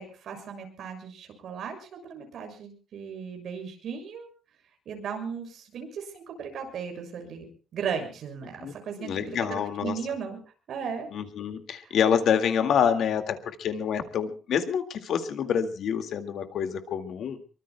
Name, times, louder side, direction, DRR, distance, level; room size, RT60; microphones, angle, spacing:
voice 1, 0.0-4.3 4.8-7.5 7.7-10.4 10.7-11.1 11.8-11.9, right 6 dB, 55° right, 5 dB, 6.6 m, -36 dB
voice 2, 9.0-10.0 11.1-17.4, left 8 dB, 60° left, 8 dB, 2.1 m, -27 dB
25.0 x 24.0 x 2.3 m, 0.36 s
cardioid pair, 180°, 0 cm